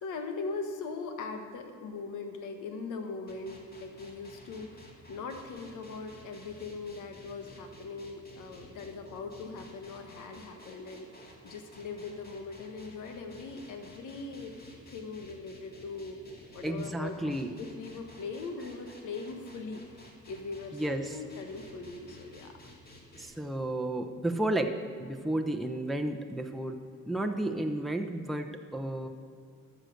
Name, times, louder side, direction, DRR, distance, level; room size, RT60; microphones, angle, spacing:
voice 1, 0.0-4.8 5.1-14.5 14.9-16.2 16.5-22.5, left 4 dB, 80° left, 6 dB, 1.4 m, -40 dB
sound 1, 3.3-23.3, left 1 dB, 30° left, 2.5 m, -53 dB
voice 2, 16.6-17.5 20.7-21.2 23.2-29.1, right 1 dB, ahead, 3 dB, 0.7 m, -32 dB
13.0 x 6.6 x 6.5 m, 2.3 s
cardioid pair, 90°, 30 cm